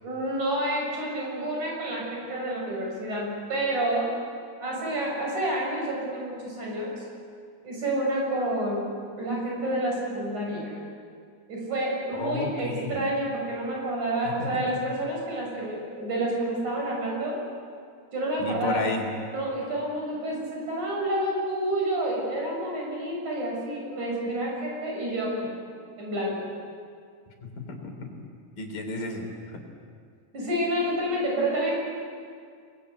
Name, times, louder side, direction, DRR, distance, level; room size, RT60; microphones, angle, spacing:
voice 1, 0.0-4.1 4.6-7.0 7.6-10.7 11.5-17.4 18.1-18.8 19.3-25.4 26.0-26.5 30.3-31.8, right 1 dB, 60° right, -2 dB, 8.7 m, -29 dB
voice 2, 12.1-13.0 18.4-19.1 27.7-28.1 28.6-29.6, left 3 dB, 75° left, 3 dB, 5.4 m, -32 dB
29.0 x 21.5 x 8.3 m, 2.2 s
omnidirectional pair, 3.9 m